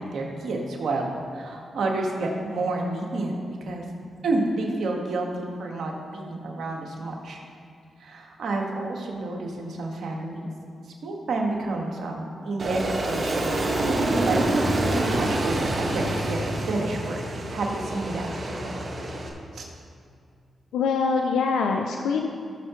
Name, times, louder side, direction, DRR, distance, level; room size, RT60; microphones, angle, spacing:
voice 1, 0.0-3.8 4.2-7.4 8.0-10.5 10.8-14.4 14.8-17.2 17.5-18.6 19.5-19.7, right 2 dB, 70° right, 0 dB, 1.6 m, -30 dB
Aircraft, 12.6-19.3, right 2 dB, 50° right, 1.6 m, -26 dB
voice 2, 20.7-22.3, left 5 dB, 85° left, 3 dB, 0.5 m, -24 dB
16.5 x 6.7 x 3.1 m, 2.3 s
supercardioid pair, 50°, 0 cm